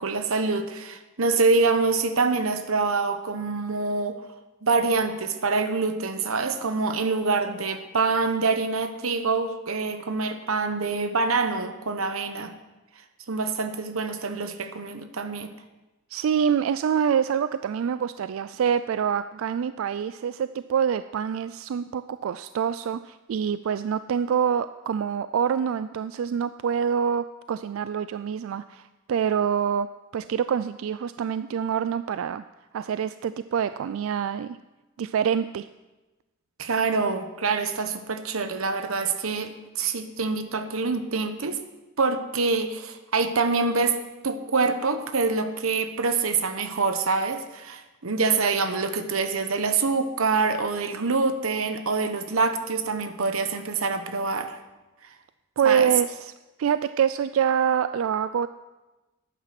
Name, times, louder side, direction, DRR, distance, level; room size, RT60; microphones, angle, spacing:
voice 1, 0.0-4.2 4.6-12.5 13.3-15.5 36.6-41.6 42.0-44.0 44.2-54.6 55.6-55.9, right 4 dB, 90° right, 9 dB, 1.0 m, -25 dB
voice 2, 16.1-29.9 30.1-32.4 32.7-34.6 35.0-35.7 55.6-56.3 56.6-58.5, right 7 dB, 75° right, 13 dB, 0.3 m, -26 dB
11.5 x 9.1 x 5.9 m, 1.1 s
head